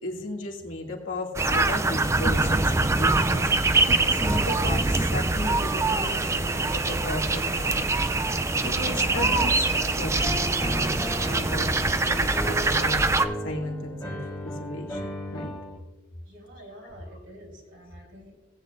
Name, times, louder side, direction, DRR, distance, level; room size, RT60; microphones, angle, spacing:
voice 1, 0.0-7.9 8.6-9.7 10.0-11.8 12.0-13.1 13.4-15.1 15.3-15.6, left 2 dB, 85° left, -1 dB, 2.4 m, -35 dB
sound 1, 1.4-13.3, right 3 dB, 15° right, 0.4 m, -24 dB
Piano, 8.9-15.8, equal, 15° left, 1.8 m, -35 dB
voice 2, 16.2-18.5, equal, 75° right, 0 dB, 3.6 m, -48 dB
19.0 x 8.4 x 2.6 m, 1.2 s
head